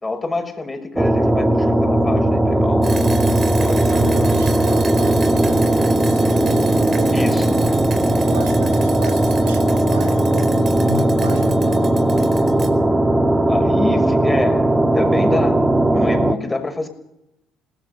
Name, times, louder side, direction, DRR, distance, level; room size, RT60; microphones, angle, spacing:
voice 1, 0.0-2.9 3.6-3.9 7.1-7.6 13.5-14.7 14.9-16.9, left 2 dB, 20° left, 5 dB, 6.1 m, -26 dB
gloomy ambient pad, 1.0-16.3, right 1 dB, 15° right, 2.2 m, -17 dB
sound 1, 2.8-12.7, right 4 dB, 40° right, 4.7 m, -32 dB
voice 2, 3.8-7.2 8.0-12.1, right 3 dB, 90° right, 5 dB, 2.7 m, -33 dB
27.5 x 19.0 x 6.9 m, 0.85 s
hypercardioid pair, 60°, 0 cm